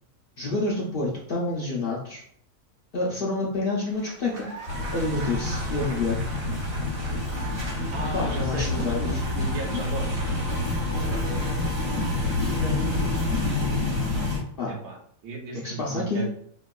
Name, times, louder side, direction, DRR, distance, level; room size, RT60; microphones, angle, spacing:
voice 1, 0.4-2.2 2.9-4.5 4.9-6.2 8.1-9.0 12.6-12.8 14.6-14.7 15.5-16.2, left 2 dB, 65° left, -3 dB, 0.5 m, -28 dB
Applause, 3.9-14.3, right 2 dB, 50° right, 1.4 m, -43 dB
sound 1, 4.7-14.4, left 2 dB, 20° right, 1.1 m, -27 dB
voice 2, 7.6-10.2 14.7-15.0 15.2-16.3, right 3 dB, 80° right, 1 dB, 1.3 m, -35 dB
4.3 x 2.2 x 2.3 m, 0.66 s
omnidirectional pair, 1.6 m